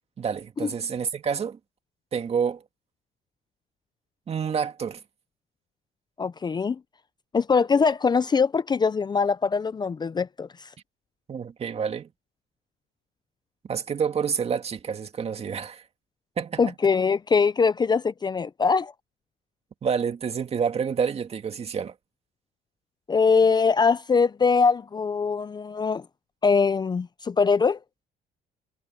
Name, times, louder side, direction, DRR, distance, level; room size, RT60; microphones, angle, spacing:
voice 1, 0.2-1.6 2.1-2.6 4.3-5.0 11.3-12.1 13.7-15.8 16.4-16.7 19.8-21.9, right 6 dB, 35° right, 2.0 m, -28 dB
voice 2, 6.2-6.8 7.3-10.5 16.6-18.9 23.1-26.0 26.4-27.8, left 5 dB, 25° left, 0.6 m, -22 dB
cardioid pair, 110°, 17 cm